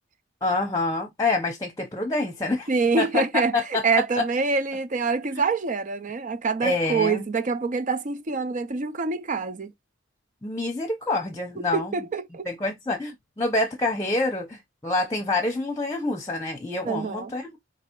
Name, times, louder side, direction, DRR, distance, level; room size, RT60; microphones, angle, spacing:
voice 1, 0.4-2.7 3.0-3.1 3.5-3.8 4.2-4.3 6.6-7.2 10.4-11.9 12.5-17.6, left 2 dB, 15° left, 0.8 m, -27 dB
voice 2, 2.7-9.7 11.6-12.5 16.8-17.3, right 4 dB, 40° right, 0.5 m, -26 dB
4.6 x 2.9 x 3.0 m
head